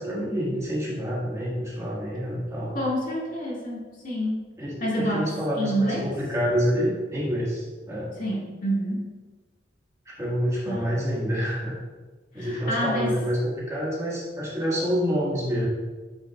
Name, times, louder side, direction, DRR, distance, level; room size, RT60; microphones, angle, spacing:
voice 1, 0.0-2.7 4.6-8.2 10.0-11.7 12.3-15.7, equal, 15° right, -6 dB, 1.7 m, -27 dB
voice 2, 2.7-4.4 4.8-6.1 8.2-9.1 10.7-10.9 12.4-13.1, equal, 50° left, -4 dB, 1.9 m, -28 dB
8.7 x 6.3 x 2.4 m, 1.3 s
head